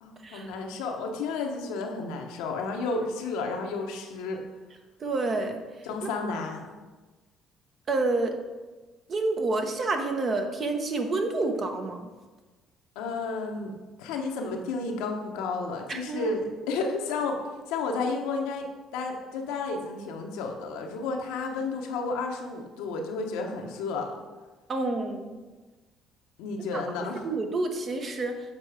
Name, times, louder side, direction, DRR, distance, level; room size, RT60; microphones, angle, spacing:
voice 1, 0.0-4.4 5.8-6.7 12.9-13.7 14.0-17.4 17.7-18.7 18.9-24.2 26.4-27.3, left 3 dB, 85° left, 2 dB, 0.9 m, -32 dB
voice 2, 5.0-5.6 7.9-8.4 9.1-12.1 15.9-16.3 24.7-25.4 26.7-26.8 27.2-28.3, right 3 dB, 45° right, 5 dB, 1.1 m, -28 dB
7.5 x 4.5 x 4.9 m, 1.3 s
supercardioid pair, 75°, 0 cm